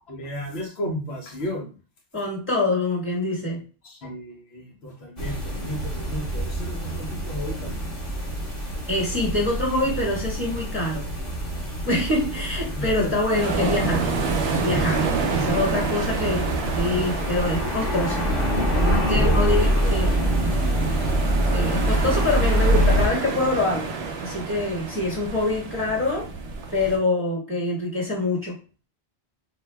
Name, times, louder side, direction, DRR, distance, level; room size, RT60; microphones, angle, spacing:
voice 1, 0.1-1.7 3.8-7.9 12.8-13.1 15.3-15.8 19.0-19.5 19.8-19.9, equal, 80° left, 0 dB, 1.1 m, -33 dB
voice 2, 2.1-3.6 8.9-11.1 11.8-14.1 14.6-16.5 16.7-18.2 18.7-20.1 21.5-23.8 24.2-26.3 26.7-28.5, left 2 dB, 10° left, -3 dB, 1.3 m, -25 dB
sound 1, 5.2-23.1, equal, 35° left, 1.2 m, -25 dB
sound 2, 13.3-27.0, right 4 dB, 85° right, 0.9 m, -29 dB
3.6 x 2.5 x 2.2 m, 0.35 s
omnidirectional pair, 1.0 m